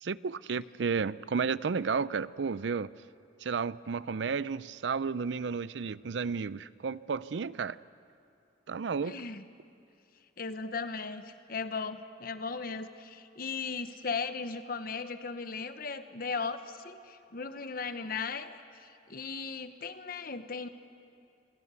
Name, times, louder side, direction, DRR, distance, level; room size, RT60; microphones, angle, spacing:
voice 1, 0.0-2.9 3.4-7.8 8.7-9.2, right 5 dB, 75° right, 18 dB, 0.5 m, -32 dB
voice 2, 9.0-9.4 10.4-20.7, left 4 dB, 50° left, 10 dB, 1.0 m, -37 dB
26.5 x 17.0 x 8.3 m, 2.6 s
head